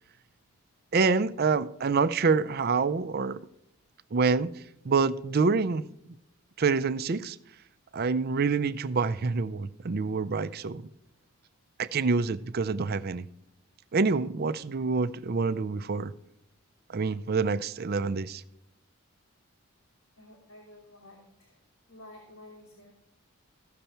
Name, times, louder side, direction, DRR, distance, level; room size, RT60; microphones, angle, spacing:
voice 1, 0.9-3.4 4.1-4.5 4.8-5.9 6.6-7.4 7.9-10.8 11.8-13.3 13.9-16.1 16.9-18.4, right 4 dB, 45° right, 0.4 m, -26 dB
voice 2, 20.2-21.6 21.9-22.9, left 1 dB, 80° left, 2.7 m, -51 dB
15.0 x 6.7 x 4.4 m
head